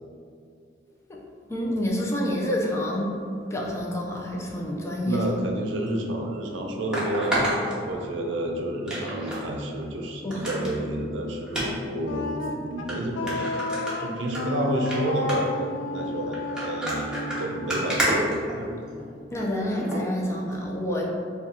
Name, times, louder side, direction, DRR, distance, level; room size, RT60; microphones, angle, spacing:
voice 1, 1.5-3.1 3.5-5.2 10.2-10.4 19.3-21.1, left 1 dB, 15° left, -2 dB, 0.5 m, -28 dB
voice 2, 5.0-12.3 12.5-13.6 14.0-15.7 15.9-18.7, right 1 dB, 80° right, 1 dB, 0.5 m, -30 dB
sound 1, 5.9-6.0 6.9-8.4 8.9-9.4 9.8-9.9 10.3-10.7 11.5-11.7 12.4-12.5 12.9-13.0 13.3-14.4 14.7-15.0 15.3-15.6 16.3-19.0 19.8-20.0 20.5-20.6, right 1 dB, 5° right, 0.8 m, -29 dB
Wind instrument woodwind instrument, 12.0-19.0, left 2 dB, 90° left, 0.4 m, -33 dB
3.7 x 2.4 x 4.2 m, 2.4 s
head